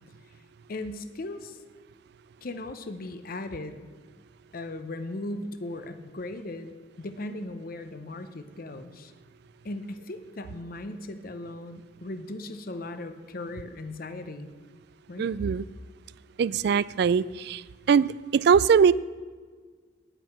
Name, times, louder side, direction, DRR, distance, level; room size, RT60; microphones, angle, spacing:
voice 1, 0.7-1.6 2.4-3.9 4.5-9.1 9.6-14.5 15.1-15.3, left 2 dB, 50° left, 10 dB, 0.7 m, -38 dB
voice 2, 15.2-15.6 16.4-17.6 17.9-18.9, right 6 dB, 60° right, 19 dB, 0.3 m, -21 dB
10.0 x 9.0 x 5.9 m, 1.5 s
head